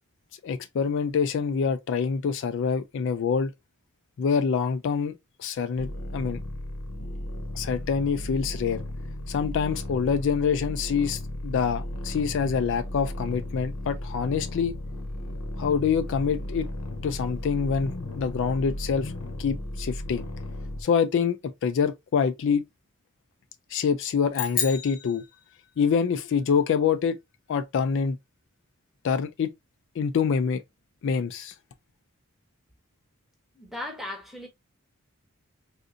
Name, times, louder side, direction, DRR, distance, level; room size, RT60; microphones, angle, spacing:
voice 1, 0.4-3.5 4.2-6.4 7.5-8.8 9.3-14.7 15.6-16.7 17.0-19.1 19.4-20.3 20.8-22.6 23.7-25.2 25.8-27.2 27.5-28.2 29.0-29.5 30.0-30.6 31.0-31.5, left 6 dB, 55° left, 0.3 m, -26 dB
sound 1, 5.8-20.8, left 1 dB, 90° left, 0.8 m, -35 dB
sound 2, 24.3-26.0, left 8 dB, 40° left, 0.9 m, -32 dB
voice 2, 33.5-34.5, left 1 dB, ahead, 0.8 m, -37 dB
3.7 x 2.5 x 2.5 m
head